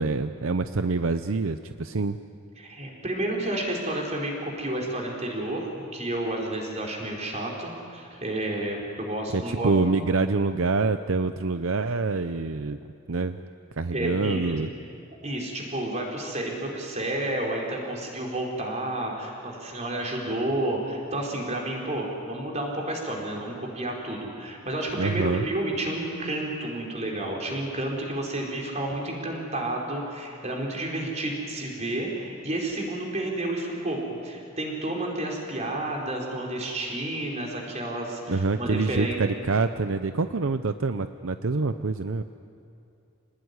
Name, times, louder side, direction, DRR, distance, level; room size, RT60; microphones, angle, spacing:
voice 1, 0.0-2.2 9.3-12.8 13.1-13.4 13.8-14.7 25.0-25.5 38.3-42.2, right 3 dB, 70° right, 10 dB, 0.7 m, -26 dB
voice 2, 2.6-9.7 13.9-14.6 15.2-39.2, right 1 dB, 35° right, -1 dB, 4.8 m, -31 dB
27.0 x 19.5 x 9.8 m, 2.6 s
head